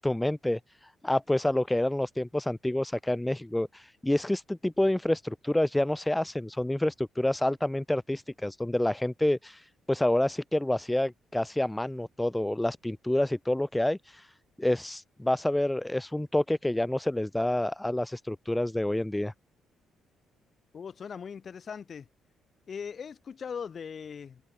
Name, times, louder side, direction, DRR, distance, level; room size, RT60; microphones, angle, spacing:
voice 1, 0.0-14.3 14.6-19.3, left 1 dB, 10° left, 0.6 m, -28 dB
voice 2, 20.7-22.1 22.7-24.4, left 6 dB, 45° left, 5.4 m, -39 dB
cardioid pair, 90°, 0 cm